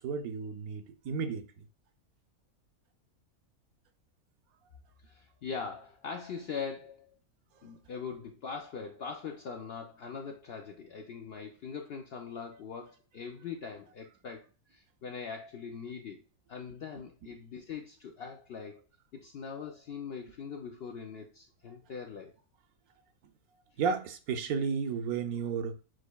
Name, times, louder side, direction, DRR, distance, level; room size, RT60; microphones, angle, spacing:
voice 1, 0.0-1.6 17.2-17.3 23.8-25.8, right 6 dB, 80° right, 1.1 m, -33 dB
voice 2, 5.0-7.2 7.6-16.2 16.5-18.8 19.2-22.3, left 6 dB, 65° left, 0.6 m, -42 dB
6.4 x 3.1 x 2.3 m
omnidirectional pair, 1.5 m